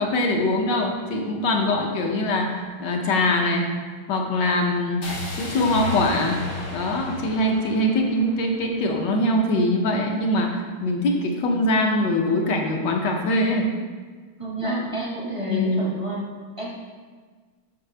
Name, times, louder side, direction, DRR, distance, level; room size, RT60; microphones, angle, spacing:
voice 1, 0.0-3.7 4.1-5.0 5.4-6.4 6.7-13.7 14.6-14.9 15.5-15.9, left 1 dB, 65° left, 2 dB, 1.5 m, -23 dB
sound 1, 5.0-9.1, left 3 dB, 80° left, 2.4 m, -33 dB
voice 2, 14.4-16.7, equal, 25° right, -4 dB, 0.7 m, -31 dB
7.8 x 6.5 x 3.3 m, 1.5 s
omnidirectional pair, 2.3 m